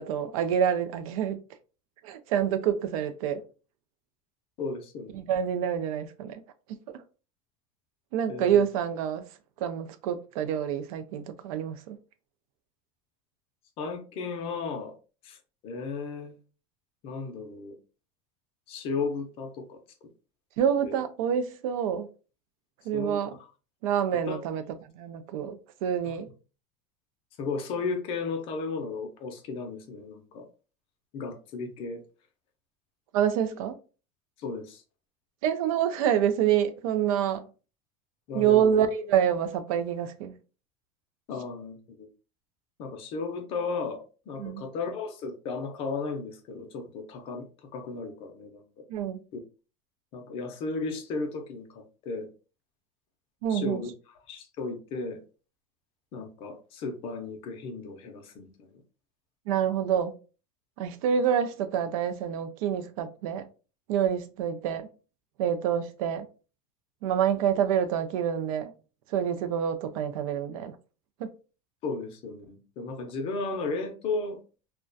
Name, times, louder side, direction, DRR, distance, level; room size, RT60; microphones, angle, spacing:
voice 1, 0.0-1.4 2.0-3.4 5.1-6.4 8.1-9.2 9.6-12.0 20.6-22.1 22.9-23.4 23.8-26.3 33.1-33.8 35.4-37.4 38.3-40.4 44.4-44.6 48.9-49.2 53.4-53.9 59.5-60.2 60.8-63.5 63.9-64.9 65.4-66.2 67.0-68.7 69.1-70.7 71.2-71.3, right 9 dB, 90° right, 0.4 m, -27 dB
voice 2, 4.6-5.2 8.3-8.6 13.8-14.9 15.2-15.4 15.6-16.3 17.0-17.8 18.7-19.8 20.8-21.0 22.9-23.5 24.3-24.4 26.0-26.2 27.4-30.5 31.1-32.0 34.4-34.8 38.3-38.7 41.3-42.1 42.8-47.5 47.7-48.6 49.3-49.4 50.1-52.3 53.5-53.9 54.3-55.2 56.1-58.7 71.8-74.4, left 4 dB, 35° left, 0.4 m, -34 dB
2.2 x 2.2 x 2.5 m
cardioid pair, 175°, 17 cm